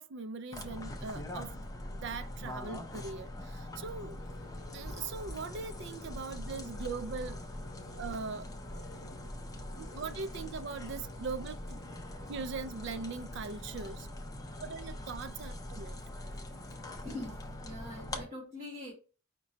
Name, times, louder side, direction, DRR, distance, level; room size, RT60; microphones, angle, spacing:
voice 1, 0.0-4.4 4.7-7.4 8.0-8.5 9.7-11.8 12.3-14.1 14.6-16.0, right 4 dB, 55° right, 0.4 m, -41 dB
sound 1, 0.5-18.2, left 1 dB, 15° left, 0.5 m, -43 dB
sound 2, 4.2-13.4, left 2 dB, 65° left, 0.6 m, -57 dB
voice 2, 17.0-18.9, left 1 dB, 35° right, 1.5 m, -43 dB
5.1 x 2.2 x 3.8 m
head